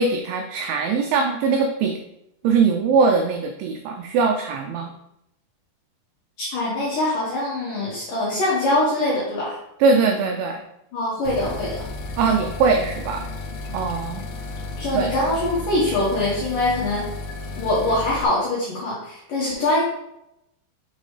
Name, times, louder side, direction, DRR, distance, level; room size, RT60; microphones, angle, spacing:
voice 1, 0.0-2.0 2.4-4.9 9.8-10.6 12.2-13.2 13.7-14.3 14.9-15.1, right 5 dB, 90° right, 4 dB, 2.5 m, -21 dB
voice 2, 6.4-9.6 10.9-11.8 14.8-17.1 17.6-19.8, left 1 dB, 65° left, -7 dB, 2.2 m, -23 dB
sound 1, 11.3-18.3, left 3 dB, 80° left, 2.6 m, -33 dB
6.6 x 5.3 x 3.2 m, 0.82 s
omnidirectional pair, 5.9 m